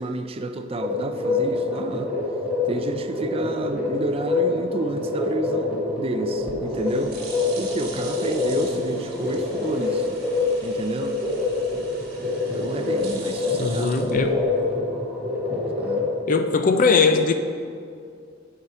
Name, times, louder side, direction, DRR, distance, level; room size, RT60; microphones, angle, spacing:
voice 1, 0.0-2.1 2.7-7.2 7.6-10.1 10.6-11.2 12.5-14.0 15.8-16.1, right 2 dB, 30° right, 8 dB, 0.4 m, -30 dB
sound 1, 0.8-16.1, left 3 dB, 5° right, 1.6 m, -26 dB
sound 2, 6.5-14.8, right 4 dB, 55° right, 1.4 m, -42 dB
voice 2, 13.6-14.4 16.3-17.3, left 4 dB, 45° left, 8 dB, 0.5 m, -20 dB
9.7 x 5.7 x 4.5 m, 2.4 s
head